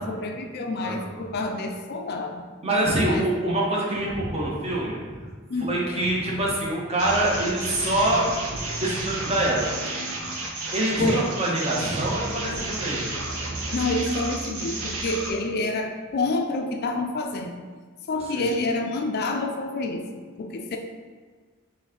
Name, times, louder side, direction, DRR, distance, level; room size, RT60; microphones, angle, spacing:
voice 1, 0.0-2.5 3.0-3.3 5.5-5.7 11.0-11.3 13.7-17.6 18.1-20.8, left 2 dB, 50° left, 4 dB, 0.4 m, -28 dB
voice 2, 0.8-1.2 2.6-5.2 5.6-9.7 10.2-10.3 10.7-13.2 18.3-18.5, right 1 dB, 30° right, -3 dB, 0.9 m, -25 dB
sound 1, 7.0-15.3, right 2 dB, 80° right, 0.8 m, -32 dB
4.0 x 3.3 x 3.7 m, 1.5 s
head